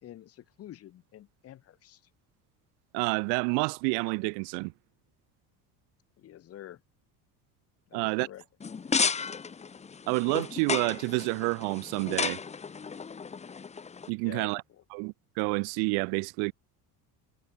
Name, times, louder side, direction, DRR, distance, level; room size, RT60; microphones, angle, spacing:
voice 1, 0.0-2.0 6.2-6.8 7.9-8.4 9.1-9.2 14.2-14.6, left 12 dB, 35° left, 4.5 m, -47 dB
voice 2, 2.9-4.7 7.9-8.3 10.1-12.4 14.1-14.6 14.9-16.5, right 38 dB, 85° right, 0.9 m, -29 dB
sound 1, 8.6-14.1, left 5 dB, 15° left, 3.0 m, -33 dB
cardioid pair, 175°, 39 cm